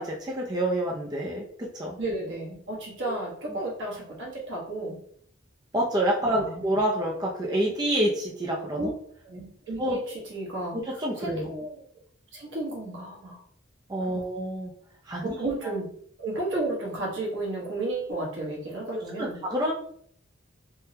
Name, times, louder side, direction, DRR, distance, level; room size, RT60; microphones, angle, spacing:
voice 1, 0.0-2.0 3.1-3.2 5.7-8.9 9.8-10.0 10.7-11.5 13.9-14.7 15.1-15.3 18.9-19.7, right 1 dB, 20° right, -2 dB, 0.4 m, -28 dB
voice 2, 2.0-5.0 6.2-6.6 8.8-8.9 9.2-10.8 11.2-11.8 12.3-13.4 14.1-14.3 15.2-15.9 16.2-19.4, right 2 dB, 70° right, -4 dB, 1.2 m, -33 dB
3.5 x 2.1 x 2.7 m, 0.62 s
head